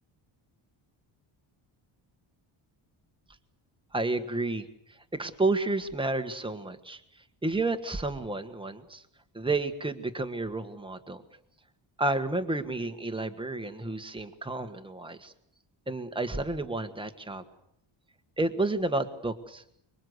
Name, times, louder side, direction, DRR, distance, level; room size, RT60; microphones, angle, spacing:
voice 1, 3.9-4.7 5.1-7.0 7.4-9.0 9.3-11.2 12.0-15.3 15.9-17.4 18.4-19.6, right 2 dB, 10° right, 7 dB, 1.5 m, -31 dB
25.5 x 23.0 x 8.0 m, 0.75 s
cardioid pair, 165°, 49 cm